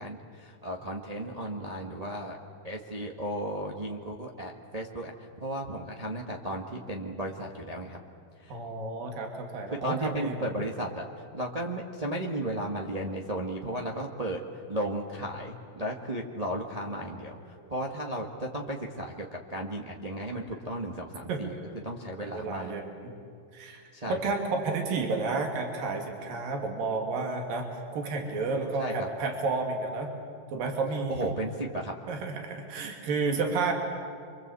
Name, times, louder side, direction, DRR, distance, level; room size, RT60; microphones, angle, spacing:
voice 1, 0.0-2.4 2.6-8.0 8.4-8.6 9.7-11.1 11.3-21.5 21.8-22.7 23.9-24.2 28.8-29.1 31.1-32.0, right 1 dB, 35° right, 0 dB, 0.5 m, -35 dB
voice 2, 8.5-10.7 17.6-17.7 21.3-21.4 22.2-23.1 23.5-30.1 30.5-31.3 32.1-33.7, right 3 dB, 85° right, 2 dB, 4.2 m, -31 dB
29.0 x 24.5 x 8.3 m, 2.3 s
omnidirectional pair, 3.9 m